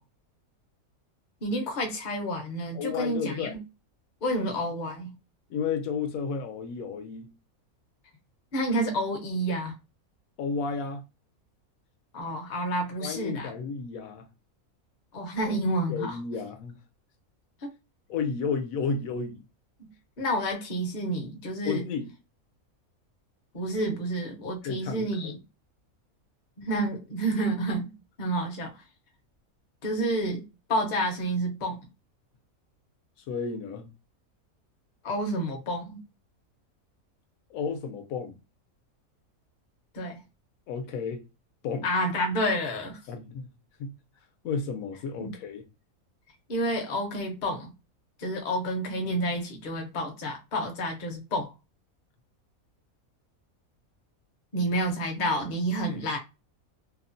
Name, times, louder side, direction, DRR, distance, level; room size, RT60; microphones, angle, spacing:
voice 1, 1.4-3.6 4.2-5.1 8.5-9.7 12.1-13.5 15.1-16.2 17.6-17.7 20.2-21.8 23.5-25.4 26.6-27.9 28.2-28.7 29.8-30.4 30.7-31.8 35.0-36.0 39.9-40.2 41.8-43.0 45.2-45.3 46.5-47.7 48.2-51.5 54.5-56.2, right 1 dB, 45° left, 0.7 m, -29 dB
voice 2, 2.7-3.6 5.5-7.3 10.4-11.0 13.0-14.3 15.5-15.6 15.9-16.7 18.1-19.5 21.6-22.1 24.6-25.4 33.3-33.9 37.5-38.4 40.7-41.2 41.6-41.9 43.1-43.5 43.8-43.9 44.4-45.6, left 5 dB, 75° left, 1.0 m, -32 dB
2.9 x 2.1 x 2.5 m
omnidirectional pair, 1.5 m